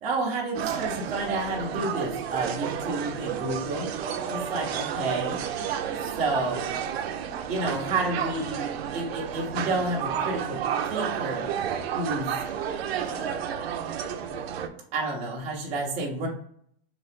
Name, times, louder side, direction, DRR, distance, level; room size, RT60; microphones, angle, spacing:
voice 1, 0.0-3.9 4.3-5.4 6.2-6.6 7.5-8.6 8.9-10.6 10.9-11.5 11.9-12.3 13.0-13.4 14.9-16.3, right 2 dB, 20° right, -3 dB, 0.9 m, -30 dB
sound 1, 0.5-14.7, right 8 dB, 90° right, 0.6 m, -31 dB
3.9 x 2.9 x 3.5 m, 0.62 s
supercardioid pair, 170°, 30 cm